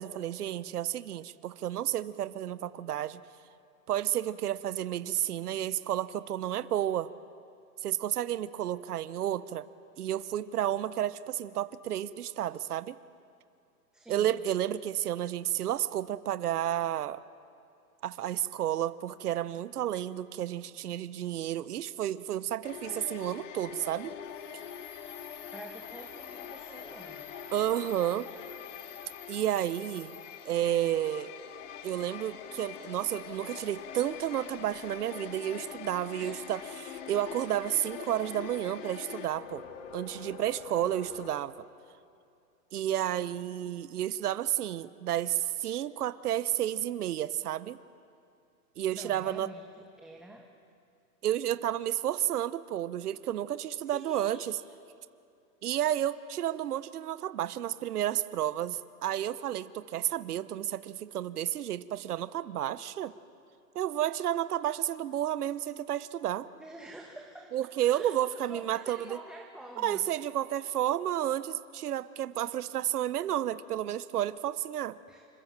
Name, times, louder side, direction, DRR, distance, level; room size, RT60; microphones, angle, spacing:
voice 1, 0.0-3.2 3.9-7.1 7.8-9.6 10.0-12.9 14.1-17.2 18.0-24.1 27.5-28.3 29.3-30.2 30.4-31.3 31.8-39.6 39.9-41.5 42.7-47.8 48.8-49.5 51.2-54.6 55.6-63.1 63.7-66.5 67.5-69.2 69.8-75.0, right 11 dB, 80° right, 14 dB, 1.1 m, -31 dB
voice 2, 13.9-14.4 25.5-27.3 36.2-36.5 48.9-50.5 53.8-54.5 66.5-70.0 75.1-75.2, right 1 dB, ahead, 0 dB, 1.2 m, -48 dB
sound 1, 22.6-41.4, left 8 dB, 55° left, 2.4 m, -44 dB
sound 2, 24.2-30.6, left 8 dB, 90° left, 5.8 m, -51 dB
27.5 x 25.5 x 7.5 m, 2.6 s
hypercardioid pair, 145°, 45 cm